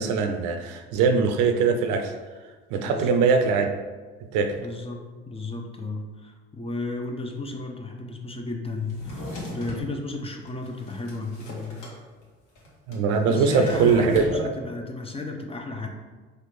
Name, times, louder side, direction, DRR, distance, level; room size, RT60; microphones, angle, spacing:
voice 1, 0.0-2.1 2.7-3.7 4.3-4.5 12.9-14.5, right 5 dB, 65° right, 6 dB, 0.5 m, -22 dB
voice 2, 2.7-3.3 4.6-12.0 13.2-15.9, left 2 dB, 20° left, 3 dB, 0.5 m, -34 dB
Drawer open or close, 8.8-9.9 10.5-12.0 12.2-12.3 12.5-14.3, left 1 dB, 70° left, 1.2 m, -36 dB
4.2 x 2.4 x 3.1 m, 1.4 s
hypercardioid pair, 60°, 32 cm